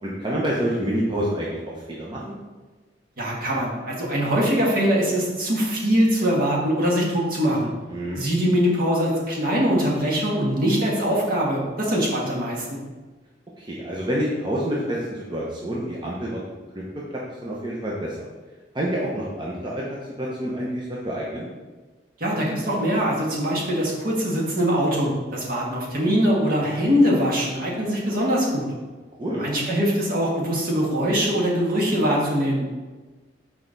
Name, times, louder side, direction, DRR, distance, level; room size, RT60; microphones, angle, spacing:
voice 1, 0.0-2.2 7.9-8.2 13.6-16.4 16.7-16.8 17.4-18.2 18.7-21.5 29.2-29.4, equal, 25° right, -4 dB, 0.8 m, -27 dB
voice 2, 3.2-7.7 8.1-12.8 22.2-28.7 29.4-32.6, equal, 55° right, -3 dB, 1.6 m, -22 dB
6.3 x 4.7 x 3.9 m, 1.3 s
head